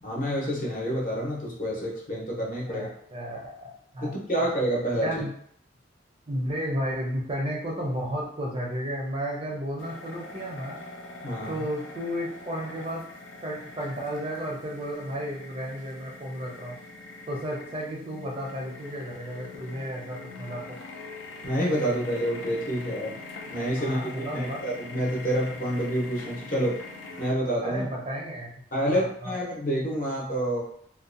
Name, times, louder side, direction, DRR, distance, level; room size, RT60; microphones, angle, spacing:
voice 1, 0.0-2.9 4.0-5.2 11.2-11.6 21.4-23.2 23.5-26.8 27.2-27.8 28.7-30.6, equal, 45° left, -4 dB, 0.8 m, -28 dB
voice 2, 2.7-3.7 3.9-4.1 4.4-4.5 5.0-5.3 6.3-10.8 11.5-13.0 13.4-16.8 17.3-20.8 23.8-24.6 27.6-28.5 28.9-29.3, equal, 30° right, -2 dB, 0.4 m, -33 dB
sound 1, 9.8-27.3, left 3 dB, 80° left, 0.5 m, -43 dB
2.5 x 2.1 x 2.5 m, 0.65 s
head